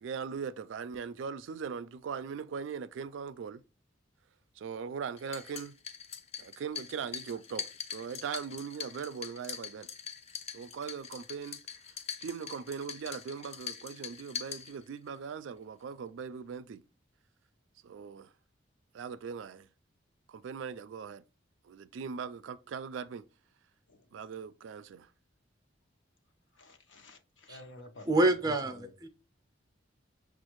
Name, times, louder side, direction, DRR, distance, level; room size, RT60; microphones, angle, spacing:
voice 1, 0.0-3.6 4.6-5.7 6.4-9.9 10.5-11.6 12.2-16.8 17.8-18.3 18.9-19.7 20.3-21.2 21.6-23.3 24.1-25.1, right 6 dB, 75° right, 0.3 m, -40 dB
sound 1, 5.2-15.2, left 7 dB, 35° left, 0.4 m, -43 dB
voice 2, 26.5-28.9, left 2 dB, 75° left, 0.8 m, -50 dB
voice 3, 28.1-29.1, right 2 dB, 20° right, 0.5 m, -27 dB
6.3 x 2.4 x 3.0 m
head